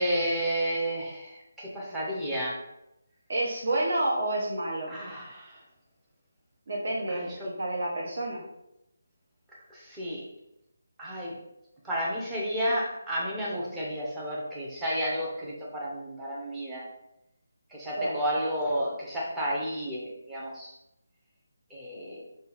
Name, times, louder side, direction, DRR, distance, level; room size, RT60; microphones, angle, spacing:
voice 1, 0.0-2.6 4.9-5.6 7.1-7.4 9.7-10.3 11.0-11.3 11.8-16.9 17.7-20.8 21.7-22.2, equal, 5° right, -7 dB, 0.7 m, -31 dB
voice 2, 3.3-5.0 6.7-7.3 7.6-8.4 18.0-18.2, right 1 dB, 55° right, -3 dB, 1.3 m, -29 dB
4.1 x 2.3 x 3.4 m, 0.85 s
figure-of-eight pair, 170°, 0 cm